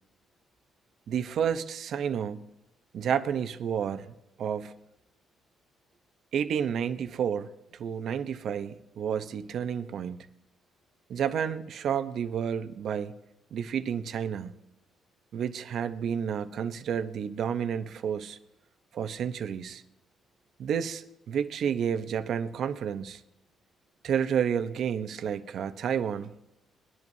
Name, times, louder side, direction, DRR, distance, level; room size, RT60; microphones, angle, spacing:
voice 1, 1.1-2.5 2.9-4.8 6.3-7.5 7.8-10.3 11.1-13.1 13.5-14.5 15.3-18.4 18.9-19.8 20.6-23.2 24.0-26.3, right 8 dB, 70° right, 0.8 m, -30 dB
21.5 x 11.0 x 2.8 m
cardioid pair, 90°, 0 cm